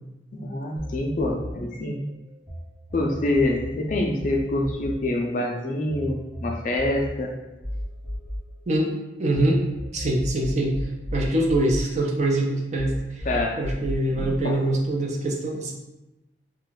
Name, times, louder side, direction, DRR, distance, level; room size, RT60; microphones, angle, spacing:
voice 1, 0.3-2.0 2.9-7.3 13.3-13.6 14.2-14.6, left 1 dB, 40° left, 1 dB, 0.3 m, -26 dB
sound 1, 0.8-2.6 2.9-9.4 9.8-12.4 12.8-14.4, equal, 20° right, 1.1 m, -34 dB
voice 2, 9.2-9.6 9.9-13.3 13.6-15.7, right 1 dB, 35° right, 0 dB, 0.4 m, -24 dB
2.3 x 2.2 x 3.9 m, 1.0 s
head